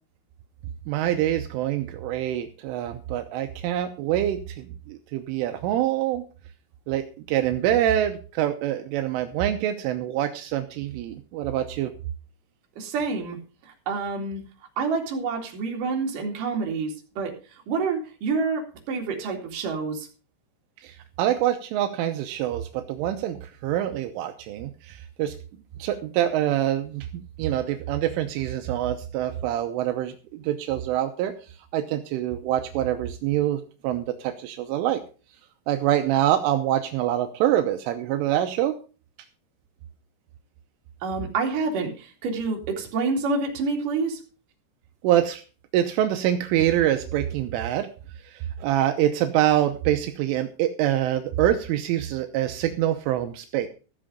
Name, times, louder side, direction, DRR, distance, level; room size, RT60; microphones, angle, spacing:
voice 1, 0.9-6.2 6.9-11.9 20.8-25.3 25.8-27.1 27.4-31.3 31.7-35.0 35.7-38.7 45.0-45.4 45.7-47.9 48.3-53.7, right 12 dB, 80° right, 6 dB, 3.3 m, -25 dB
voice 2, 12.8-13.4 13.6-14.4 14.8-20.1 41.0-44.2, right 4 dB, 50° right, 1 dB, 3.5 m, -28 dB
14.5 x 7.6 x 5.2 m, 0.35 s
omnidirectional pair, 5.9 m